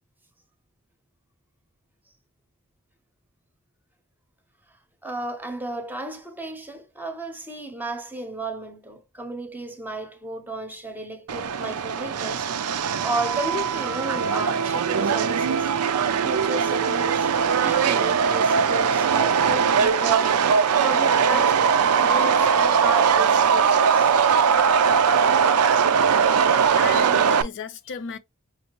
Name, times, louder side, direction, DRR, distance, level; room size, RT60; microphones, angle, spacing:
voice 1, 5.0-15.7 16.2-24.2, right 2 dB, 10° right, 0.7 m, -33 dB
Subway metro underground, 11.3-27.4, right 6 dB, 80° right, 0.5 m, -20 dB
voice 2, 26.8-28.2, left 5 dB, 55° left, 0.5 m, -34 dB
5.2 x 2.6 x 2.9 m
head